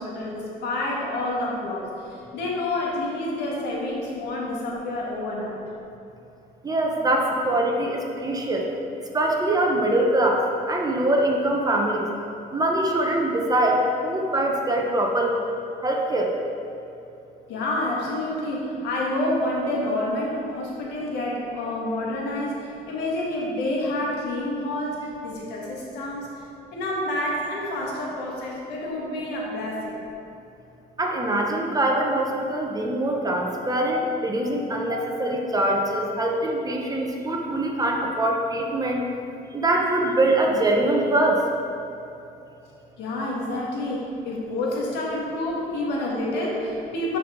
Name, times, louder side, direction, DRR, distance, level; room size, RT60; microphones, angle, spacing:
voice 1, 0.0-5.6 17.5-26.4 26.7-30.0 34.9-35.1 43.0-47.2, left 1 dB, 85° left, -3 dB, 1.7 m, -28 dB
voice 2, 6.6-8.6 9.1-12.1 12.5-15.4 15.8-16.3 31.0-39.0 39.5-41.4, right 1 dB, 20° right, 0 dB, 0.9 m, -23 dB
10.0 x 4.8 x 3.7 m, 2.8 s
cardioid pair, 110°, 17 cm